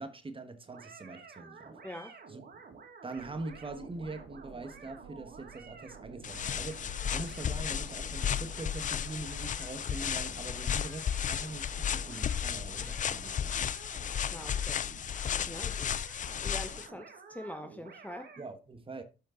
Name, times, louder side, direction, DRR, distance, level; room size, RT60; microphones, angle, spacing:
voice 1, 0.0-2.6 3.0-13.6 18.4-19.0, right 3 dB, 25° right, 1.3 m, -43 dB
sound 1, 0.6-18.5, right 5 dB, 55° right, 2.5 m, -51 dB
voice 2, 1.8-2.1 14.3-14.8 15.5-15.9 16.4-18.3, left 1 dB, 10° left, 1.0 m, -44 dB
sound 2, 3.2-8.6, right 7 dB, 70° right, 1.3 m, -54 dB
sound 3, 6.2-16.9, left 8 dB, 40° left, 0.4 m, -34 dB
12.0 x 5.3 x 3.9 m
cardioid pair, 90°, 20 cm